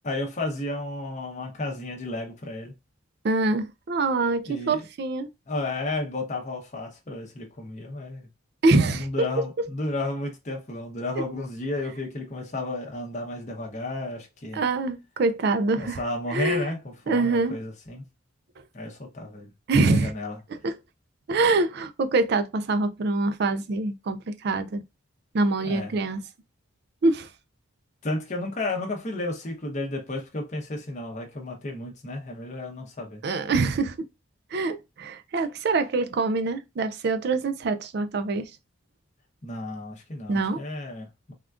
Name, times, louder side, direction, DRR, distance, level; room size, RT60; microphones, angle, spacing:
voice 1, 0.0-2.7 4.5-4.8 5.5-8.3 8.9-14.6 15.8-18.0 18.7-19.5 19.9-20.4 25.6-26.0 28.0-33.2 39.4-41.3, left 2 dB, 35° left, 0.7 m, -32 dB
voice 2, 3.2-5.3 8.6-9.7 14.5-16.0 16.3-16.7 17.1-17.6 19.7-20.1 20.6-20.7 21.3-24.8 25.3-26.2 27.0-27.3 33.2-34.0 34.5-38.5 40.3-40.6, right 3 dB, 50° right, 0.4 m, -24 dB
3.5 x 2.3 x 2.4 m
head